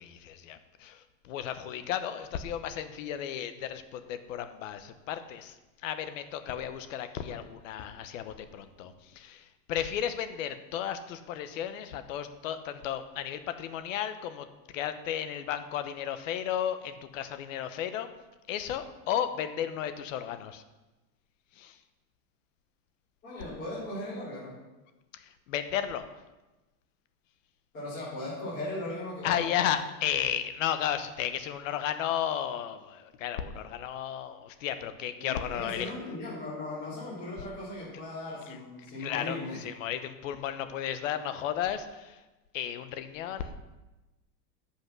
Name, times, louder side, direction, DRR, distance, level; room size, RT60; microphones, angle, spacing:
voice 1, 0.0-5.5 5.8-14.5 14.7-18.1 18.5-20.6 21.6-21.8 25.1-26.1 29.2-35.9 39.0-42.2 42.5-43.6, left 10 dB, 50° left, 10 dB, 1.0 m, -34 dB
voice 2, 23.2-24.5 27.7-29.6 35.2-39.6, left 2 dB, 20° left, -12 dB, 3.6 m, -38 dB
14.0 x 5.9 x 6.0 m, 1.1 s
supercardioid pair, 180°, 49 cm